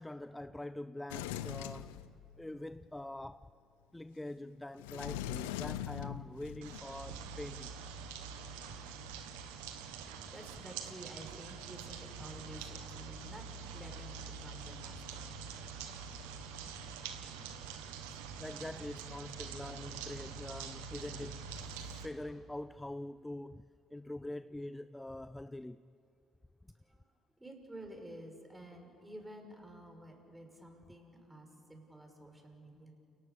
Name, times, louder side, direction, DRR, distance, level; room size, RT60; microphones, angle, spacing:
voice 1, 0.0-2.0 2.4-3.5 3.9-7.8 16.3-16.4 18.1-25.9, left 1 dB, 10° left, 0.5 m, -45 dB
Sliding door, 1.1-2.6 4.8-6.8, left 12 dB, 90° left, 0.6 m, -41 dB
sound 1, 6.6-22.1, right 6 dB, 85° right, 1.6 m, -45 dB
voice 2, 10.2-15.3 15.6-15.9 16.3-16.4 26.8-27.0 27.4-32.9, right 1 dB, 15° right, 5.9 m, -51 dB
29.0 x 18.5 x 7.0 m
hypercardioid pair, 60°, 0 cm